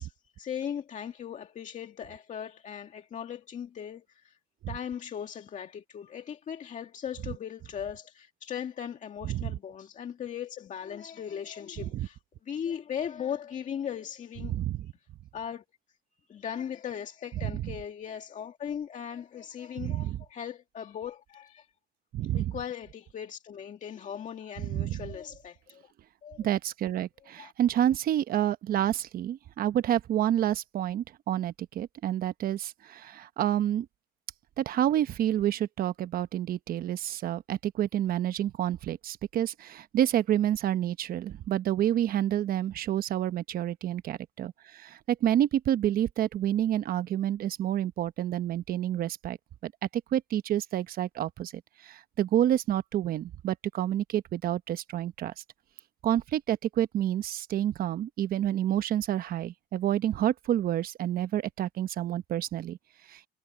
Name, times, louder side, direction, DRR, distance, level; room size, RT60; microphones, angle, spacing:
voice 1, 0.0-4.4 4.7-14.6 15.3-15.6 16.3-21.7 22.3-25.9 26.2-26.5 27.4-27.5, left 8 dB, 45° left, 2.1 m, -38 dB
voice 2, 14.4-14.9 17.4-17.7 19.8-20.2 22.1-22.5 24.6-25.1 26.4-33.9 34.6-49.4 49.6-49.7 50.1-55.3 56.0-62.8 63.1-63.2, right 11 dB, 60° right, 1.0 m, -29 dB
cardioid pair, 110°, 17 cm